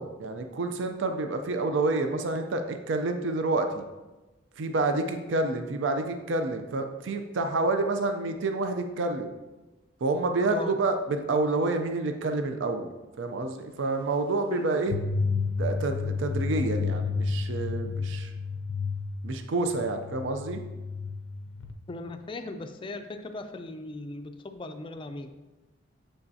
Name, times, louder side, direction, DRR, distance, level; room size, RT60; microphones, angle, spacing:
voice 1, 0.0-3.8 4.6-9.3 10.0-12.9 13.2-15.0 15.6-18.3 19.2-20.6, right 3 dB, 70° right, 6 dB, 0.5 m, -28 dB
sound 1, 14.9-21.7, left 4 dB, 85° left, 0.5 m, -31 dB
voice 2, 21.9-25.3, left 2 dB, 25° left, 7 dB, 0.4 m, -38 dB
7.1 x 5.5 x 2.7 m, 1.1 s
head